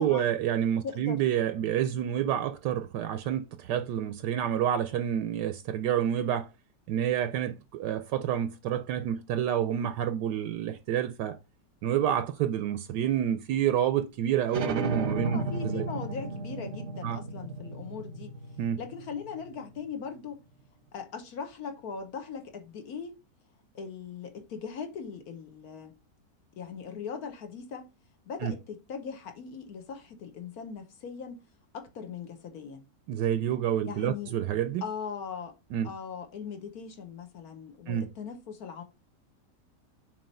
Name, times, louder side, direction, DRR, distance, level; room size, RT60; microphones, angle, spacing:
voice 1, 0.0-6.5 6.9-11.4 11.8-15.9 17.0-17.2 18.6-18.8 28.4-28.5 33.1-34.8 35.7-35.9 37.9-38.1, right 10 dB, 75° right, 1.2 m, -28 dB
voice 2, 0.8-1.2 15.2-18.3 18.8-20.4 20.9-23.1 23.7-25.9 26.5-27.9 28.3-31.4 31.7-32.9 33.8-34.3 34.8-35.5 35.8-38.8, left 6 dB, 60° left, 1.4 m, -39 dB
sound 1, 14.5-19.8, right 2 dB, 50° right, 0.9 m, -34 dB
7.0 x 3.1 x 5.4 m
omnidirectional pair, 1.9 m